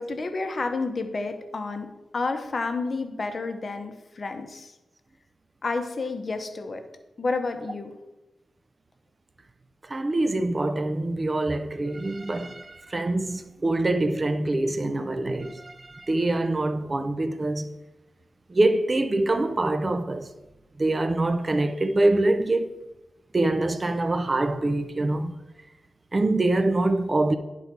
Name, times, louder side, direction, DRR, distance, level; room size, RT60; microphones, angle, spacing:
voice 1, 0.0-1.9 2.1-4.7 5.6-6.8 7.2-7.9, left 3 dB, 40° left, 0.8 m, -30 dB
voice 2, 9.9-17.8 18.5-20.3 20.8-22.7 23.3-25.3 26.1-27.4, right 2 dB, 25° right, 0.4 m, -24 dB
10.5 x 3.9 x 4.5 m
wide cardioid pair, 130°, 0 cm